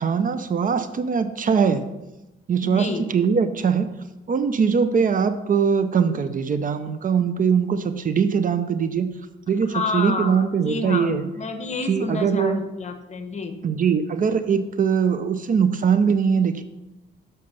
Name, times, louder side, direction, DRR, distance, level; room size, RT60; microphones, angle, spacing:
voice 1, 0.0-1.9 2.5-3.9 4.3-9.1 9.5-11.3 11.8-12.6 13.6-16.6, right 6 dB, 45° right, 11 dB, 0.6 m, -21 dB
voice 2, 2.6-3.1 9.6-13.6, left 3 dB, 35° left, 7 dB, 1.1 m, -29 dB
7.7 x 5.3 x 5.5 m, 0.98 s
cardioid pair, 90°, 20 cm